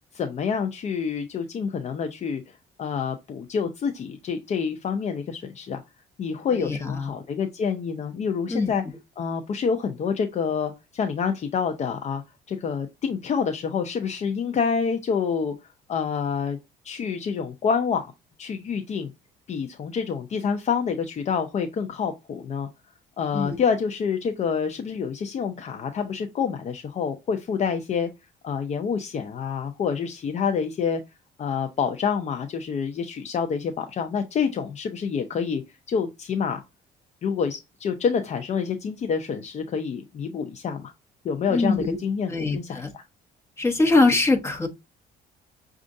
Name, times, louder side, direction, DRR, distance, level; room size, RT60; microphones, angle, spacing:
voice 1, 0.1-2.4 2.8-5.8 6.2-8.8 9.2-12.2 12.5-15.5 15.9-16.6 16.8-18.1 18.4-19.1 19.5-22.7 23.2-28.1 28.4-31.0 31.4-35.6 35.9-36.6 37.2-40.9 41.2-43.0, left 6 dB, 40° left, 0.6 m, -27 dB
voice 2, 6.5-7.1 8.5-8.7 23.3-23.6 41.5-42.0 42.3-42.9 43.6-44.7, left 3 dB, 15° left, 1.1 m, -22 dB
6.1 x 2.5 x 2.6 m
cardioid pair, 110°, 17 cm